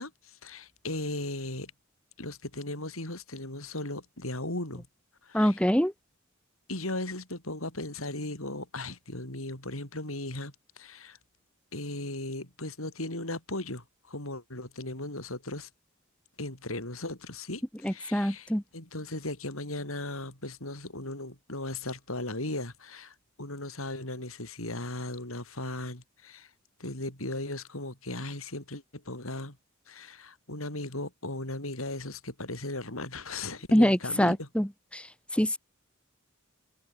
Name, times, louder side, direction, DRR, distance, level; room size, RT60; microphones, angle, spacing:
voice 1, 0.0-1.7 2.2-4.9 5.2-5.6 6.7-11.2 11.7-15.7 16.4-26.5 26.8-29.6 29.9-34.5, left 2 dB, 85° left, 7.8 m, -37 dB
voice 2, 5.3-5.9 17.8-18.6 33.7-35.1 35.3-35.6, equal, 5° left, 1.9 m, -25 dB
head